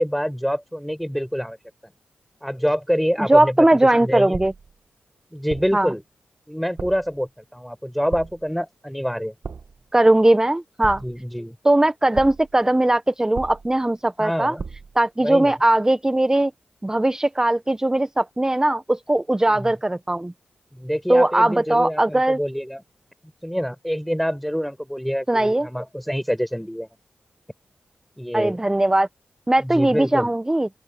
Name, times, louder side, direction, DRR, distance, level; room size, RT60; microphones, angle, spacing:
voice 1, 0.0-1.6 2.4-3.6 3.9-4.4 5.3-6.0 6.5-9.3 11.0-11.6 14.2-14.6 15.2-15.5 19.5-19.7 20.7-22.8 23.4-26.9 28.2-28.6 29.6-30.3, equal, ahead, 5.8 m, -26 dB
voice 2, 3.2-4.5 5.7-5.9 9.9-11.0 11.6-14.5 14.9-16.5 16.8-20.3 21.1-22.4 25.3-25.7 28.3-29.1 29.5-30.7, right 1 dB, 15° right, 1.1 m, -19 dB
sound 1, 4.3-4.8 5.5-5.9 6.8-7.2 8.1-8.6 9.4-9.9 10.8-11.4 12.1-12.6 13.3-13.9 14.6-15.0, right 5 dB, 65° right, 2.1 m, -36 dB
open air
supercardioid pair, 40°, 4 cm